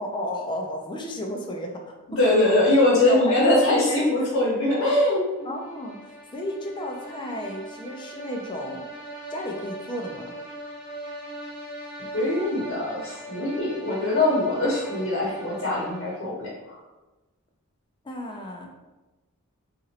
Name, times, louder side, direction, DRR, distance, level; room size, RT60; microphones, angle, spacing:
voice 1, 0.0-2.2 2.9-3.5 3.9-4.3 5.4-8.9 9.3-10.4 18.0-18.7, equal, 20° left, 1 dB, 0.4 m, -33 dB
voice 2, 2.2-5.2 12.1-16.8, left 1 dB, 60° left, -7 dB, 0.9 m, -22 dB
sound 1, 5.4-16.4, right 1 dB, 20° right, 0.8 m, -40 dB
3.0 x 2.5 x 2.8 m, 1.1 s
head